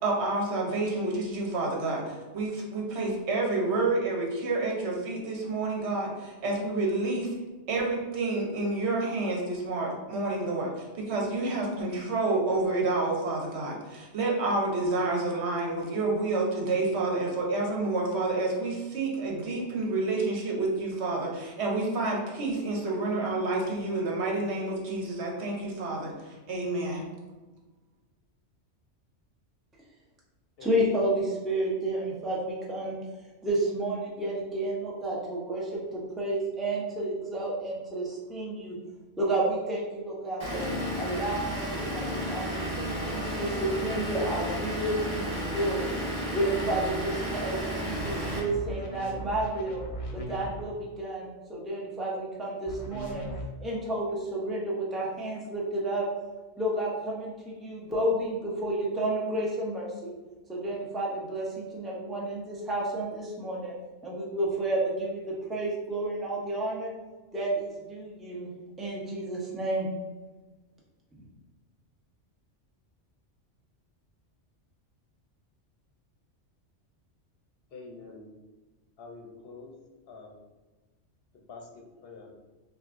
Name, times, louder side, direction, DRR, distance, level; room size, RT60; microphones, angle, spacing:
voice 1, 0.0-2.0 2.3-7.3 7.7-26.1 26.5-27.1, right 2 dB, 70° right, -1 dB, 1.1 m, -29 dB
voice 2, 30.6-33.0 33.4-38.8 39.2-40.6 41.0-45.9 46.3-49.8 50.1-53.2 53.6-56.1 56.6-60.1 60.5-63.7 64.0-66.9 67.3-68.5 68.8-69.9, right 1 dB, ahead, -5 dB, 0.6 m, -31 dB
Vehicle / Engine, 40.4-48.4, equal, 25° right, 0.9 m, -32 dB
sound 1, 48.0-50.6 52.7-53.4, right 1 dB, 45° left, 0.5 m, -38 dB
voice 3, 77.7-78.3 79.0-79.7 80.1-80.3 81.3-82.3, left 3 dB, 60° left, 1 dB, 0.9 m, -46 dB
5.9 x 2.4 x 2.5 m, 1.2 s
omnidirectional pair, 1.2 m